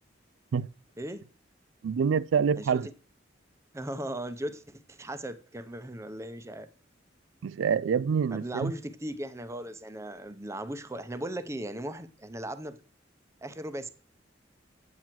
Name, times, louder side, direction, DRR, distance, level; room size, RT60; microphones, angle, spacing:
voice 1, 1.8-2.9 7.4-8.7, right 6 dB, 90° right, 0.4 m, -26 dB
voice 2, 3.7-6.7 8.3-12.8 13.4-13.9, right 1 dB, 15° right, 0.7 m, -37 dB
8.8 x 7.6 x 4.4 m
head